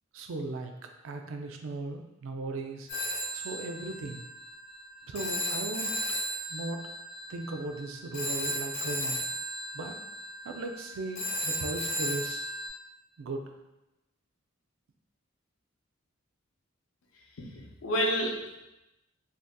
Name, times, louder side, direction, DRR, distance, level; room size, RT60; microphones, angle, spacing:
voice 1, 0.1-0.7 1.0-2.9 3.3-4.2 5.1-5.9 6.5-6.8 7.3-9.3 9.7-9.9 10.4-12.5 13.2-13.4, right 3 dB, 70° right, 4 dB, 0.4 m, -37 dB
Telephone, 2.9-12.7, equal, 35° left, 0.7 m, -35 dB
voice 2, 17.1-18.6, equal, 90° left, 0 dB, 0.6 m, -31 dB
3.4 x 2.7 x 2.2 m, 0.96 s
head